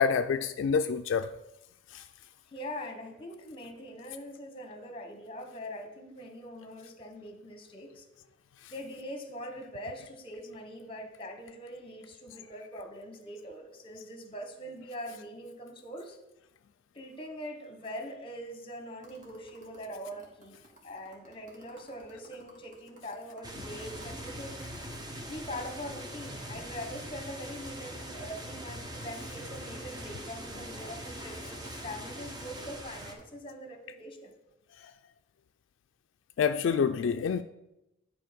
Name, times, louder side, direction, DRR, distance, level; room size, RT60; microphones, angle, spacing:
voice 1, 0.0-1.3 1.9-2.0 8.6-8.7 23.6-23.7 36.4-37.4, left 6 dB, 75° left, 0.3 m, -27 dB
voice 2, 2.5-8.1 8.7-16.2 16.9-24.6 25.1-34.4, equal, 30° left, 1.1 m, -43 dB
sound 1, 19.0-27.0 27.3-27.4 27.6-33.2, equal, 45° right, 1.9 m, -56 dB
sound 2, 23.4-33.1, equal, 20° right, 0.9 m, -42 dB
10.0 x 4.1 x 5.1 m
head